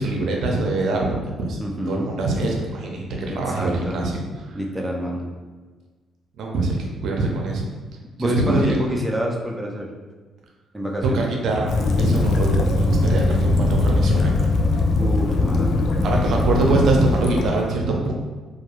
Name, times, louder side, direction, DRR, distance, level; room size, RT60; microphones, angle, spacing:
voice 1, 0.0-1.6 1.9-4.6 6.4-7.7 8.2-8.8 11.1-14.3 16.0-18.1, right 2 dB, 70° right, 0 dB, 0.5 m, -23 dB
voice 2, 1.6-2.1 3.3-4.0 4.5-5.3 8.2-9.9 10.7-11.3 15.0-15.9, equal, 5° right, -1 dB, 0.5 m, -27 dB
Waves surf / Splash splatter / Trickle dribble, 11.7-17.5, left 2 dB, 65° left, 0.3 m, -20 dB
2.3 x 2.2 x 2.9 m, 1.3 s
cardioid pair, 90°, 0 cm